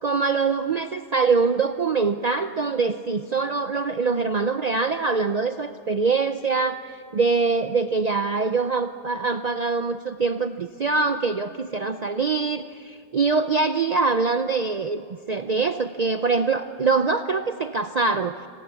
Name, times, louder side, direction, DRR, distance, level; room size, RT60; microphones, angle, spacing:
voice 1, 0.0-6.8 7.1-18.5, right 4 dB, 45° right, 8 dB, 0.7 m, -24 dB
30.0 x 20.0 x 7.1 m, 2.6 s
omnidirectional pair, 1.2 m